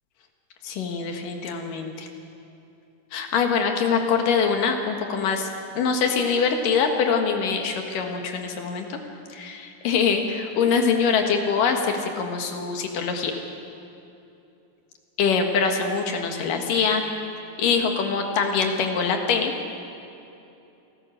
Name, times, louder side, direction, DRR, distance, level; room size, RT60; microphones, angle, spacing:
voice 1, 0.6-2.1 3.1-5.5 5.7-9.0 9.3-13.3 15.2-17.0 17.6-19.5, left 5 dB, 80° left, 4 dB, 3.2 m, -24 dB
28.0 x 14.0 x 6.5 m, 2.8 s
omnidirectional pair, 3.8 m